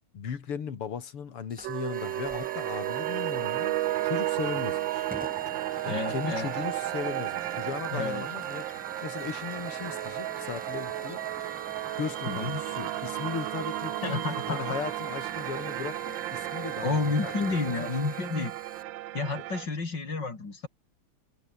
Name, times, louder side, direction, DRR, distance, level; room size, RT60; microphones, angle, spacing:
voice 1, 0.1-3.7 4.0-5.1 5.8-8.7 9.0-11.2 12.0-17.9, left 7 dB, 85° left, 3.2 m, -37 dB
Hiss / Fire, 1.5-18.8, equal, 5° right, 4.0 m, -46 dB
sound 1, 1.6-19.7, right 16 dB, 70° right, 1.2 m, -33 dB
sound 2, 5.5-14.5, right 1 dB, 30° right, 7.7 m, -56 dB
voice 2, 5.9-6.5 7.9-8.3 12.3-12.6 14.0-14.7 16.8-18.6 19.1-20.7, left 4 dB, 55° left, 4.6 m, -30 dB
omnidirectional pair, 2.4 m